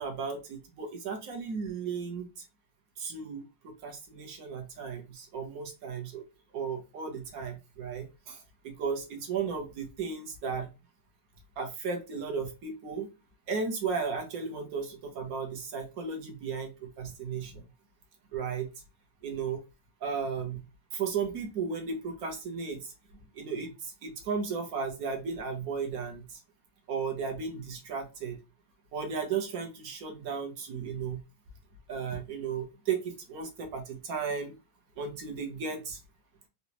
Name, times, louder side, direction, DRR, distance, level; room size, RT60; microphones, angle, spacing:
voice 1, 0.0-2.3 3.0-6.2 6.5-10.7 11.6-13.1 13.5-17.6 18.3-18.7 19.2-19.6 20.0-20.6 20.9-22.9 23.3-26.4 26.9-28.4 28.9-31.2 31.9-34.6 35.0-36.0, right 5 dB, 60° right, 3 dB, 1.1 m, -35 dB
3.9 x 2.3 x 2.9 m, 0.28 s
omnidirectional pair, 1.9 m